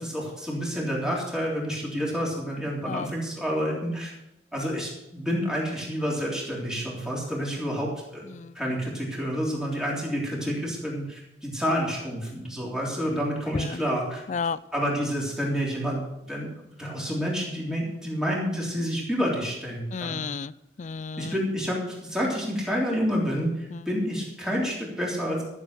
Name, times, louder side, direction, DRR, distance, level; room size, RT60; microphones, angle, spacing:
voice 1, 0.0-4.2 4.5-14.2 14.7-16.5 16.8-20.2 21.2-25.4, equal, 5° right, -4 dB, 3.5 m, -29 dB
voice 2, 8.3-8.8 13.5-13.8 14.3-14.6 19.9-21.3 23.7-23.9, left 5 dB, 40° left, 19 dB, 0.4 m, -33 dB
13.5 x 7.3 x 6.7 m, 0.90 s
head